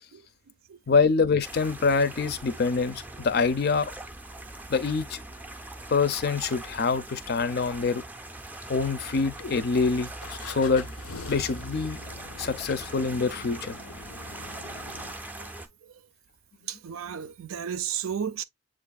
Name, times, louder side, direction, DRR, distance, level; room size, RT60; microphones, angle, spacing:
voice 1, 0.9-3.9 4.7-5.2 5.9-8.0 8.7-10.9 11.3-12.0 12.4-13.7, left 4 dB, 50° left, 0.5 m, -25 dB
sound 1, 1.4-15.7, right 2 dB, 10° right, 0.4 m, -41 dB
sound 2, 9.0-9.5 10.2-15.1, left 4 dB, 90° left, 0.6 m, -44 dB
voice 2, 16.7-18.4, right 8 dB, 80° right, 0.5 m, -33 dB
7.4 x 2.5 x 2.3 m
head